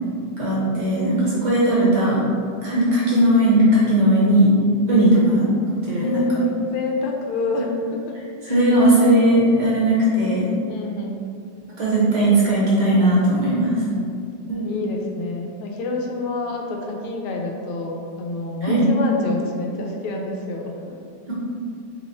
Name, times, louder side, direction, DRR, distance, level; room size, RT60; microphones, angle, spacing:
voice 1, 0.4-2.2 2.6-4.5 4.9-6.3 8.5-10.5 11.8-13.7 14.5-14.6 18.6-18.9 21.3-21.4, right 1 dB, 60° right, -6 dB, 1.4 m, -18 dB
voice 2, 6.0-8.2 8.4-8.6 10.7-11.2 13.5-14.1 14.6-20.9, left 3 dB, 85° left, 1 dB, 1.5 m, -28 dB
3.7 x 3.0 x 4.0 m, 2.4 s
omnidirectional pair, 2.3 m